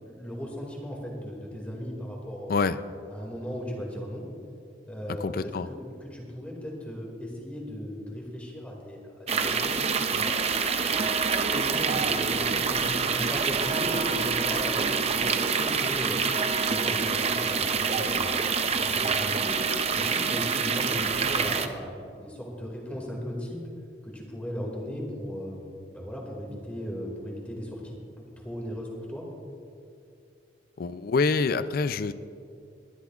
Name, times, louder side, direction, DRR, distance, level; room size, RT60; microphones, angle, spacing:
voice 1, 0.0-2.6 3.1-4.2 4.9-10.3 10.8-16.2 16.6-19.6 19.9-23.6 24.0-28.0 28.4-29.2, equal, 5° left, -2 dB, 2.2 m, -37 dB
voice 2, 5.2-5.7 30.8-32.1, left 4 dB, 50° left, 14 dB, 0.4 m, -26 dB
sound 1, 9.3-21.7, right 5 dB, 35° right, 0.6 m, -26 dB
21.5 x 12.0 x 2.4 m, 2.5 s
head